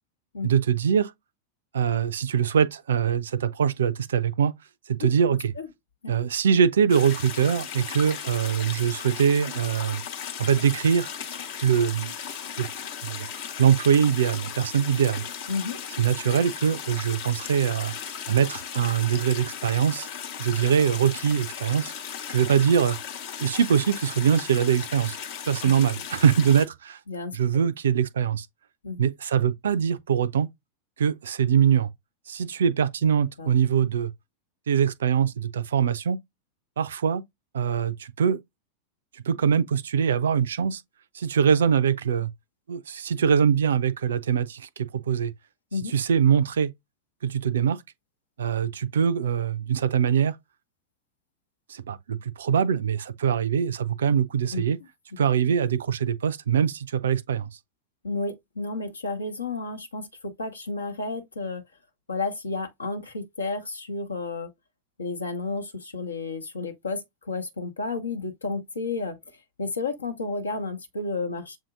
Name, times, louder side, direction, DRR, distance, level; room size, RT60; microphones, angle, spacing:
voice 1, 0.4-1.1 1.7-4.5 4.9-5.5 6.1-10.0 10.4-11.1 11.6-12.1 12.6-12.7 13.0-13.3 13.6-15.2 16.0-17.9 18.3-20.1 20.4-21.9 22.3-23.0 23.4-25.2 25.4-27.0 27.3-28.5 29.0-30.5 31.0-31.9 32.3-34.1 34.7-36.2 36.8-37.2 37.5-38.4 39.3-40.8 41.1-42.3 42.7-45.3 45.9-46.7 47.2-47.8 48.4-50.4 51.7-54.8 55.2-57.5, right 7 dB, 65° right, 0.3 m, -23 dB
sound 1, 6.9-26.7, left 8 dB, 50° left, 0.8 m, -37 dB
voice 2, 15.5-15.8 27.1-27.3 28.8-29.0 33.4-33.5 45.7-45.9 54.5-54.6 58.0-61.6 62.1-64.5 65.0-69.2 69.6-71.6, left 3 dB, 75° left, 0.9 m, -31 dB
7.2 x 2.7 x 2.4 m
figure-of-eight pair, 90°, 0 cm